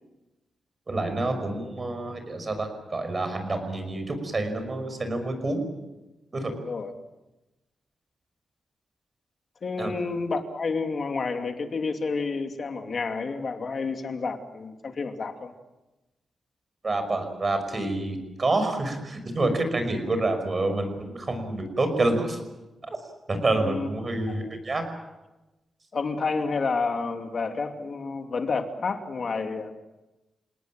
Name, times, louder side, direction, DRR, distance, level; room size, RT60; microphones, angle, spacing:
voice 1, 0.9-5.6 6.3-6.5 9.8-10.0 16.8-22.4 22.8-23.0 23.3-24.9, right 2 dB, 30° right, 7 dB, 5.5 m, -28 dB
voice 2, 6.6-6.9 9.6-15.5 23.6-23.9 24.4-24.5 25.9-29.7, left 4 dB, 45° left, 5 dB, 2.6 m, -30 dB
29.0 x 18.5 x 7.7 m, 1.0 s
wide cardioid pair, 140°, 0 cm